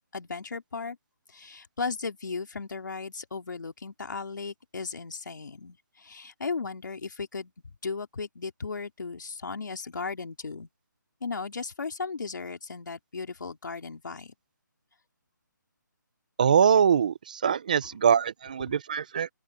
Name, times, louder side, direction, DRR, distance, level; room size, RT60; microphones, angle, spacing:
voice 1, 0.1-1.0 1.3-10.7 11.2-14.3, left 4 dB, 70° left, 4.0 m, -36 dB
voice 2, 16.4-19.3, right 7 dB, 25° right, 0.5 m, -23 dB
open air
hypercardioid pair, 175°, 11 cm